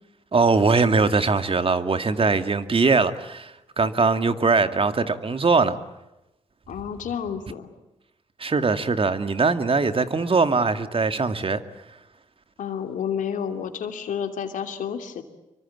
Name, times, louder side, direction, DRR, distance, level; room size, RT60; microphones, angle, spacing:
voice 1, 0.3-5.8 8.4-11.6, right 4 dB, 45° right, 2.2 m, -21 dB
voice 2, 6.7-7.7 12.6-15.2, left 8 dB, 75° left, 2.9 m, -30 dB
26.0 x 24.5 x 8.6 m
hypercardioid pair, 40°, 14 cm